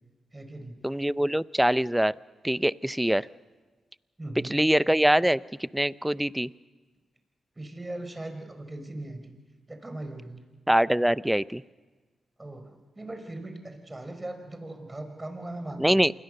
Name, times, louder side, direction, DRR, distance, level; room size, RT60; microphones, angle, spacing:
voice 1, 0.3-0.8 4.2-4.7 7.6-9.4 9.7-10.4 12.4-16.0, right 2 dB, 25° right, 6 dB, 5.2 m, -39 dB
voice 2, 0.8-2.1 2.4-3.3 4.4-6.5 10.7-11.6 15.8-16.1, right 1 dB, 5° right, 18 dB, 0.7 m, -24 dB
27.5 x 21.0 x 6.7 m, 1.3 s
supercardioid pair, 45°, 0 cm